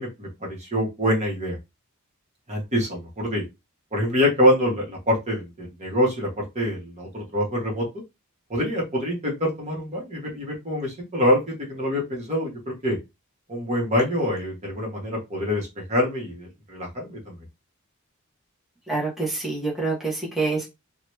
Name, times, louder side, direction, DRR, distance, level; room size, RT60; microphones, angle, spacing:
voice 1, 0.0-1.6 2.5-3.4 3.9-7.9 8.5-13.0 13.5-17.4, equal, 35° right, -2 dB, 1.1 m, -25 dB
voice 2, 18.9-20.6, right 3 dB, ahead, -5 dB, 1.0 m, -26 dB
2.9 x 2.3 x 3.0 m, 0.23 s
head